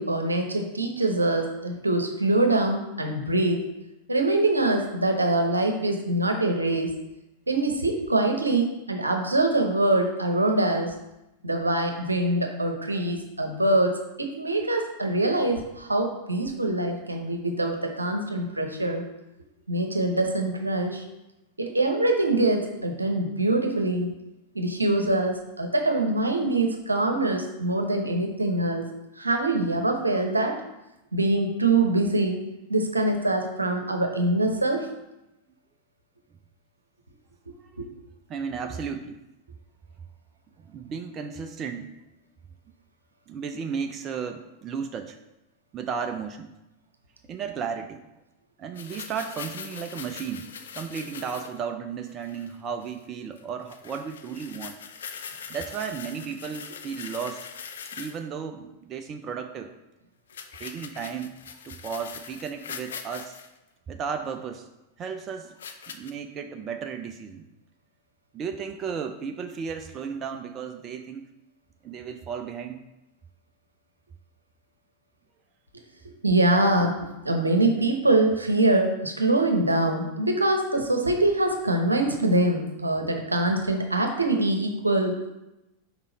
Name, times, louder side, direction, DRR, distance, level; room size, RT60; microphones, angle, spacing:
voice 1, 0.0-3.7 4.1-6.9 7.5-10.9 11.4-19.1 19.7-21.0 21.6-24.2 24.5-28.9 29.2-30.6 31.1-32.4 32.7-34.9 37.5-37.9 76.0-85.3, right 2 dB, 80° right, 4 dB, 0.8 m, -24 dB
voice 2, 38.3-39.2 40.6-41.9 43.3-45.2 45.7-46.5 47.3-48.0 48.6-54.8 55.5-57.5 57.9-59.7 60.6-61.4 61.6-63.4 63.9-64.7 65.0-65.6 65.9-67.5 68.3-71.3 71.8-72.8, right 6 dB, 30° right, 6 dB, 0.4 m, -34 dB
sound 1, 48.8-51.6 52.1-52.5 52.8-53.0 53.4-53.5 53.7-58.2 60.3-63.5 64.3-64.4 65.6-66.1, left 7 dB, 65° left, 0.5 m, -41 dB
5.6 x 4.8 x 3.9 m, 0.95 s
figure-of-eight pair, 90°, 0 cm